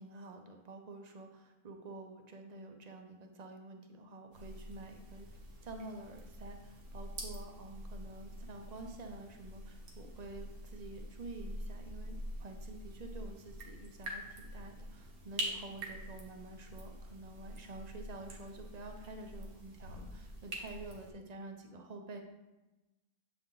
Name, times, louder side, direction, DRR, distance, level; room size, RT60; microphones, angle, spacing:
voice 1, 0.0-5.3 5.6-22.2, right 2 dB, 50° right, 4 dB, 0.5 m, -49 dB
sound 1, 4.3-21.1, right 1 dB, 80° right, 1.6 m, -46 dB
7.6 x 4.3 x 3.8 m, 1.0 s
omnidirectional pair, 1.5 m